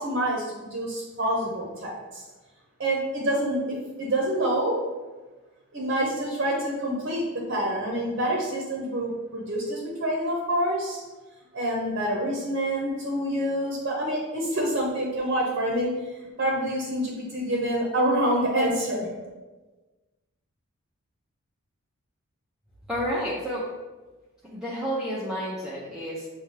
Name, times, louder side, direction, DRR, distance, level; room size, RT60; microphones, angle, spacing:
voice 1, 0.0-2.2 2.8-3.6 4.0-4.8 5.7-11.0 11.5-15.9 16.2-19.1, right 1 dB, 50° right, -2 dB, 0.8 m, -27 dB
voice 2, 22.9-23.7 24.5-26.3, equal, 5° right, -8 dB, 0.5 m, -30 dB
6.8 x 2.3 x 3.2 m, 1.2 s
head